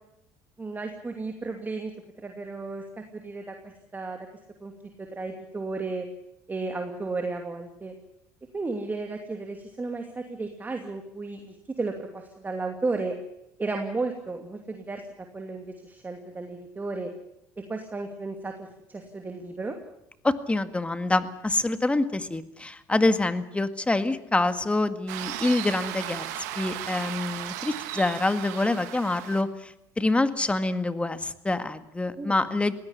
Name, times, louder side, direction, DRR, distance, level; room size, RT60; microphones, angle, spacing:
voice 1, 0.6-1.9 2.2-2.8 3.1-4.2 4.6-4.7 5.0-6.1 6.5-7.9 8.5-13.1 13.6-15.0 15.3-17.1 17.7-19.8 32.2-32.5, right 3 dB, 20° right, 4 dB, 2.7 m, -33 dB
voice 2, 20.2-26.3 26.6-32.7, left 2 dB, 15° left, 11 dB, 1.9 m, -26 dB
sound 1, 25.1-29.4, right 13 dB, 85° right, 2.2 m, -36 dB
20.5 x 16.5 x 9.9 m, 0.81 s
supercardioid pair, 85°, 9 cm